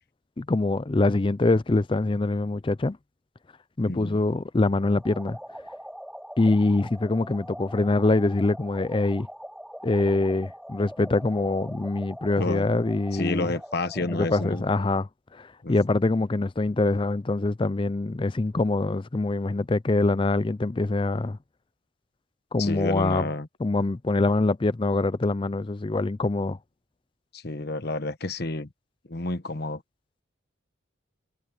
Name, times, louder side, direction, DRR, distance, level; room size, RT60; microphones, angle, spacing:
voice 1, 0.4-3.0 3.8-5.4 6.4-9.3 9.8-13.5 14.0-21.4 22.5-23.3 23.6-26.6, left 2 dB, 25° left, 0.4 m, -24 dB
voice 2, 3.9-4.2 12.4-12.7 13.1-14.6 15.6-15.8 22.6-23.5 27.3-28.7 29.1-29.8, left 2 dB, 50° left, 1.2 m, -30 dB
sound 1, 4.8-14.8, equal, ahead, 5.3 m, -43 dB
head